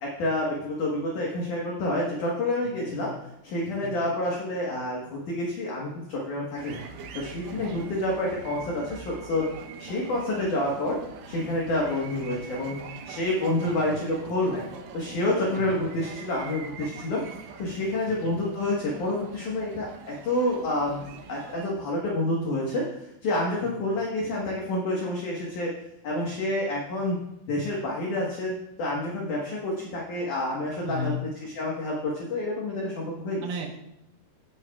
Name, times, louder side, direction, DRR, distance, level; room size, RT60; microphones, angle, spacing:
voice 1, 0.0-3.1 3.4-6.8 7.1-9.4 9.8-11.0 11.3-12.8 13.1-14.6 14.9-17.2 17.6-25.7 26.0-27.2 27.5-28.5 28.8-33.5, left 1 dB, 60° left, -3 dB, 2.3 m, -28 dB
voice 2, 2.6-3.2 3.8-4.0 7.5-7.8 13.6-13.7 15.6-15.8 18.1-18.4 23.6-23.9 30.8-31.2 33.4-33.7, left 1 dB, 65° right, 2 dB, 2.6 m, -36 dB
sound 1, 6.6-21.7, right 6 dB, 85° right, 1.9 m, -44 dB
17.0 x 8.1 x 2.4 m, 0.83 s
omnidirectional pair, 5.1 m